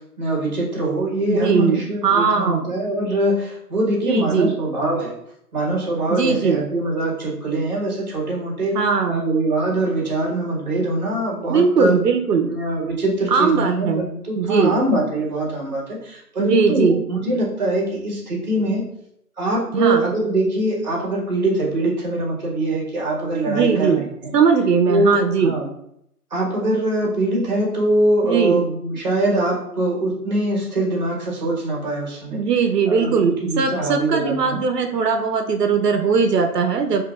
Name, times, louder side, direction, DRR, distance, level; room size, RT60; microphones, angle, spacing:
voice 1, 0.2-5.1 5.5-8.8 9.1-12.0 12.4-18.8 19.4-24.3 24.9-25.7 26.3-32.4 32.9-34.6, right 1 dB, 25° right, -4 dB, 1.4 m, -23 dB
voice 2, 1.3-2.8 4.0-4.6 6.1-6.6 8.7-9.3 11.5-12.5 13.3-14.1 14.4-14.8 16.4-17.0 19.7-20.1 23.5-24.0 24.3-25.6 28.2-28.6 32.3-37.1, right 5 dB, 80° right, 5 dB, 0.7 m, -19 dB
6.6 x 3.2 x 2.4 m, 0.77 s
hypercardioid pair, 175°, 47 cm